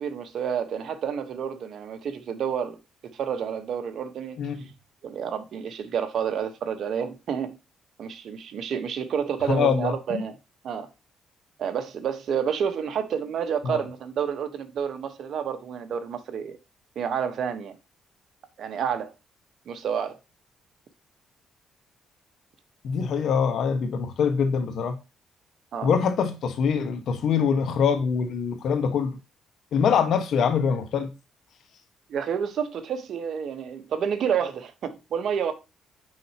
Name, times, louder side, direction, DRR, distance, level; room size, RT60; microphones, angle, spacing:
voice 1, 0.0-2.8 3.1-4.4 5.0-7.6 8.0-10.3 10.6-10.9 11.6-16.6 16.9-17.8 18.6-19.1 19.7-20.2 25.7-25.9 32.1-35.5, right 7 dB, 65° right, 1.2 m, -29 dB
voice 2, 4.4-4.7 9.5-10.2 13.6-13.8 22.8-25.0 25.8-29.1 29.7-31.1, left 6 dB, 70° left, 1.4 m, -24 dB
6.3 x 5.6 x 2.9 m
cardioid pair, 90°, 0 cm